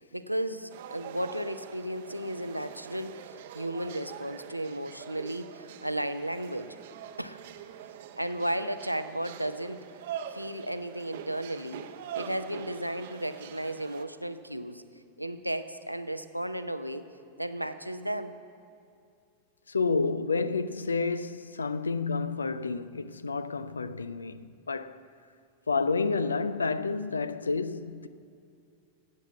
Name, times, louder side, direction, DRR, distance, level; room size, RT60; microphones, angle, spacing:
voice 1, 0.0-6.8 7.2-7.4 8.2-9.8 10.3-11.9 12.1-14.8 15.2-17.0 17.4-18.3, right 1 dB, 90° right, 0.6 m, -34 dB
sound 1, 0.7-14.0, right 9 dB, 55° right, 0.7 m, -44 dB
voice 2, 19.7-25.0 25.7-28.1, left 4 dB, 75° left, 0.4 m, -30 dB
15.5 x 8.5 x 7.3 m
figure-of-eight pair, 90°, 0 cm